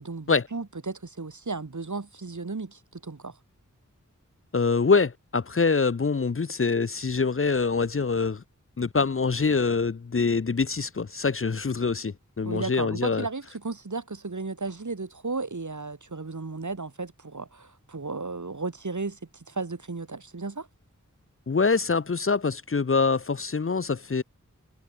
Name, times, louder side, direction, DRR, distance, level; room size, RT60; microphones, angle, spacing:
voice 1, 0.0-3.4 12.4-20.7, right 3 dB, 65° right, 4.1 m, -34 dB
voice 2, 4.5-8.4 8.8-13.2 21.5-24.2, left 4 dB, 40° left, 0.7 m, -25 dB
wide cardioid pair, 55°, 32 cm